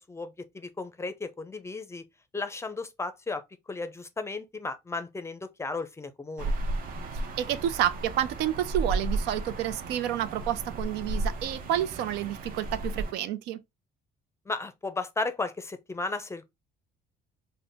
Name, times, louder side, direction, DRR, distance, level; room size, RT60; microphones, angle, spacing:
voice 1, 0.0-2.0 2.3-3.4 3.7-6.5 14.5-16.4, left 3 dB, 15° left, 0.5 m, -34 dB
sound 1, 6.4-13.1, right 2 dB, 60° right, 0.7 m, -33 dB
voice 2, 7.4-13.6, right 11 dB, 85° right, 0.4 m, -29 dB
3.8 x 2.1 x 3.3 m
cardioid pair, 110°, 17 cm